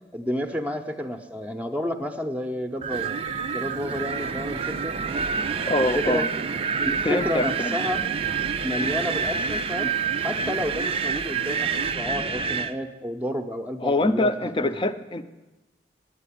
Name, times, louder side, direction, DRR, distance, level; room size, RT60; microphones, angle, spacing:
voice 1, 0.1-3.2 3.5-5.0 5.8-6.3 6.8-8.0 8.6-9.9 10.2-14.7, left 1 dB, 10° right, 6 dB, 0.7 m, -30 dB
Wind, 2.8-12.7, right 6 dB, 30° right, 0.4 m, -28 dB
sound 1, 2.8-12.0, right 4 dB, 85° right, 0.5 m, -38 dB
voice 2, 5.7-6.3 7.0-7.7 13.8-15.2, left 2 dB, 30° left, 11 dB, 0.6 m, -24 dB
10.0 x 9.0 x 10.0 m, 1.1 s
head